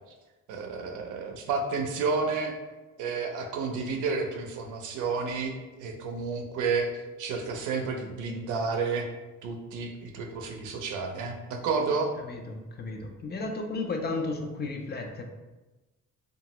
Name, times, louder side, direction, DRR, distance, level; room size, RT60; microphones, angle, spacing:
voice 1, 0.5-2.5 3.0-6.9 7.2-9.1 9.4-12.1, right 4 dB, 90° right, 3 dB, 0.5 m, -31 dB
voice 2, 12.3-15.2, left 3 dB, 35° left, 3 dB, 0.5 m, -33 dB
2.8 x 2.3 x 2.9 m, 1.1 s
cardioid pair, 90°, 30 cm